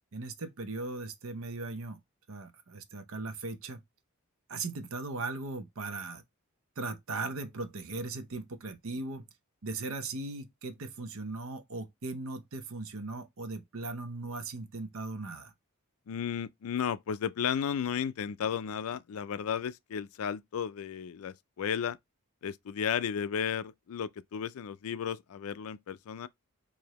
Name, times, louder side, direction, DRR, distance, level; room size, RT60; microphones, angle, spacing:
voice 1, 0.1-2.0 2.3-3.8 4.5-6.2 6.8-9.3 9.6-15.5, right 3 dB, 70° right, 0.7 m, -38 dB
voice 2, 16.1-22.0 22.4-26.3, left 8 dB, 75° left, 0.4 m, -34 dB
4.7 x 2.7 x 2.9 m
head